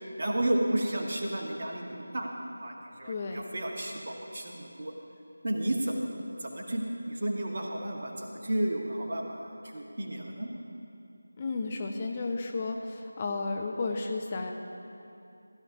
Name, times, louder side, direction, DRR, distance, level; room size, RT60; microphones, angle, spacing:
voice 1, 0.2-2.3 2.6-4.9 5.4-6.1 6.4-10.5, right 1 dB, 40° right, 0 dB, 1.2 m, -32 dB
voice 2, 3.1-3.4 11.4-14.5, left 3 dB, 25° left, 2 dB, 0.5 m, -33 dB
16.0 x 11.0 x 2.7 m, 2.8 s
figure-of-eight pair, 165°, 0 cm